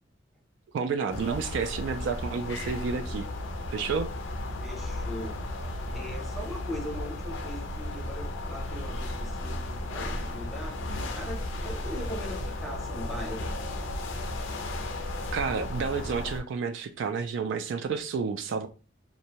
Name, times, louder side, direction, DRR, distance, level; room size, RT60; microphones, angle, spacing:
voice 1, 0.7-3.3 3.7-4.1 15.3-18.7, right 5 dB, 65° right, 0.3 m, -30 dB
sound 1, 1.1-16.4, left 1 dB, 85° left, 0.5 m, -34 dB
voice 2, 4.6-5.4 5.9-13.6, equal, ahead, 0.7 m, -40 dB
2.6 x 2.1 x 2.8 m
head